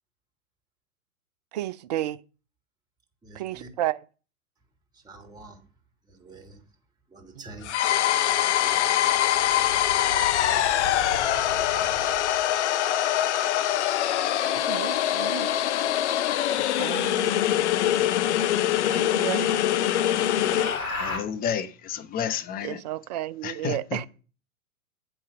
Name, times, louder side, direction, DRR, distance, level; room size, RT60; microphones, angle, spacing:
voice 1, 1.5-2.2 3.3-4.0 7.4-7.5 14.5-15.5 16.6-17.4 18.9-19.5 20.1-20.2 22.6-24.1, right 14 dB, 30° right, 0.4 m, -32 dB
voice 2, 3.2-3.7 5.0-5.6 6.1-6.6 7.1-7.7 8.6-9.1 11.3-12.2, right 3 dB, 10° right, 2.0 m, -46 dB
sound 1, 7.6-20.8, left 12 dB, 55° left, 0.7 m, -24 dB
sound 2, 9.0-12.5 14.8-15.3 17.4-17.5 18.0-18.1 18.6-21.2, left 2 dB, 75° left, 4.0 m, -38 dB
voice 3, 21.0-22.8 23.4-24.0, left 8 dB, 20° left, 0.8 m, -31 dB
8.7 x 5.5 x 6.5 m
figure-of-eight pair, 100°, 42 cm